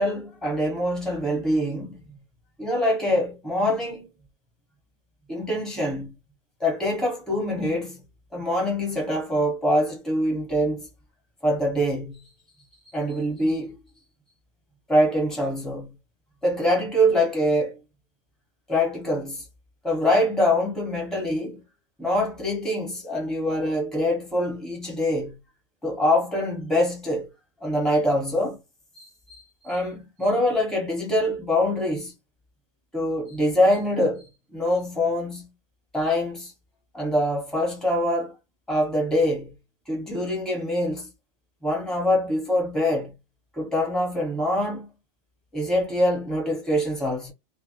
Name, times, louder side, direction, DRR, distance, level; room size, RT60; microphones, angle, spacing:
voice 1, 0.0-2.2 2.6-4.1 5.3-6.1 6.6-8.0 8.3-10.9 11.4-12.2 12.9-13.8 14.9-15.9 16.4-17.8 18.7-19.4 19.8-21.6 22.0-25.3 25.8-27.3 27.6-28.6 28.9-32.1 32.9-34.2 34.5-35.5 35.9-36.5 36.9-38.3 38.7-39.5 39.9-41.1 41.6-43.1 43.6-44.9 45.5-47.3, left 1 dB, ahead, 0.7 m, -24 dB
2.1 x 2.0 x 2.8 m
omnidirectional pair, 1.3 m